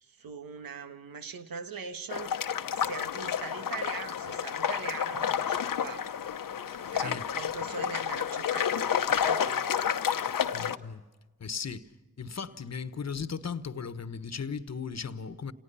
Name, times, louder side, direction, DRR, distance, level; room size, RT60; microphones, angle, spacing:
voice 1, 0.0-2.4 2.7-6.1 6.9-9.7, right 5 dB, 80° right, 1.5 m, -41 dB
sound 1, 2.1-10.8, left 8 dB, 70° left, 0.9 m, -30 dB
voice 2, 10.5-11.0 11.4-11.9 12.2-15.5, left 6 dB, 50° left, 1.3 m, -37 dB
28.5 x 18.5 x 5.6 m
cardioid pair, 45°, 34 cm